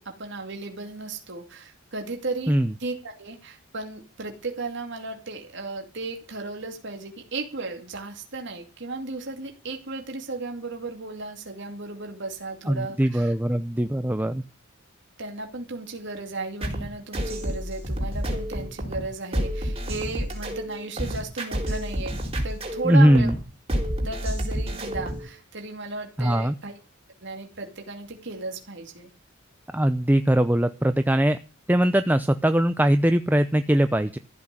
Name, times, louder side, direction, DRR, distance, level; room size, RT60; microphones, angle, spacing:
voice 1, 0.0-13.3 15.2-23.3 24.0-26.7 27.2-29.1, right 3 dB, 60° right, 3 dB, 2.5 m, -35 dB
voice 2, 12.7-14.4 22.8-23.3 26.2-26.5 29.7-31.4 31.7-34.2, right 1 dB, 10° right, 10 dB, 0.6 m, -21 dB
sound 1, 16.6-25.3, equal, 30° right, 4.1 m, -29 dB
15.0 x 6.1 x 9.7 m, 0.35 s
head